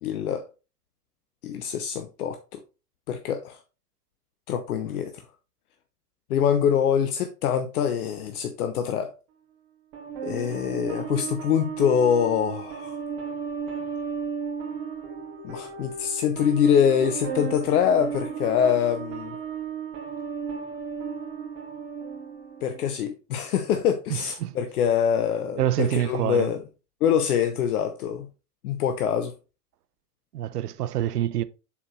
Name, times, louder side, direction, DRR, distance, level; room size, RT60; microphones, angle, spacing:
voice 1, 0.0-0.5 1.4-2.6 3.1-3.6 4.5-5.1 6.3-9.1 10.2-13.0 15.4-19.4 22.6-26.6 27.0-28.3 28.6-29.3, left 8 dB, 70° left, 0.8 m, -24 dB
sound 1, 9.9-23.0, right 6 dB, 50° right, 2.1 m, -34 dB
voice 2, 24.1-24.6 25.6-26.5 30.3-31.4, right 12 dB, 75° right, 0.7 m, -26 dB
7.1 x 4.5 x 3.0 m
hypercardioid pair, 95°, 47 cm